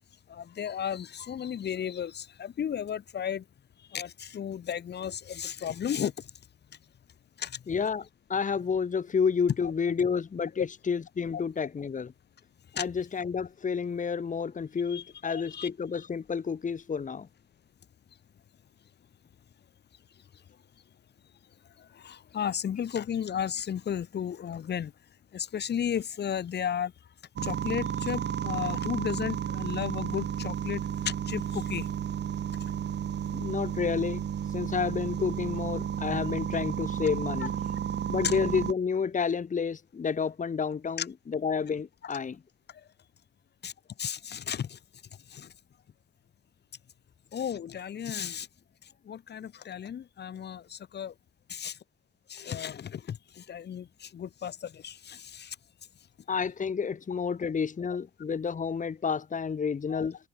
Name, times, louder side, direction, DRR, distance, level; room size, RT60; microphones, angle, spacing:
voice 1, 0.3-3.4 3.9-6.1 7.4-7.6 9.9-10.0 10.6-10.7 11.3-11.4 12.8-12.9 14.9-15.7 22.0-24.9 25.3-26.9 27.4-30.8 31.1-31.9 38.2-38.3 41.0-41.1 42.1-42.2 43.6-43.7 44.0-44.8 45.3-45.5 47.3-48.5 49.1-51.1 51.5-51.8 52.3-55.6 59.9-60.0, left 8 dB, 55° left, 3.8 m, -34 dB
voice 2, 7.7-12.1 12.7-17.3 33.3-37.5 38.1-42.4 56.3-60.2, left 6 dB, 40° left, 3.4 m, -30 dB
sound 1, 27.4-38.7, right 9 dB, 60° right, 2.4 m, -32 dB
open air
cardioid pair, 90°, 20 cm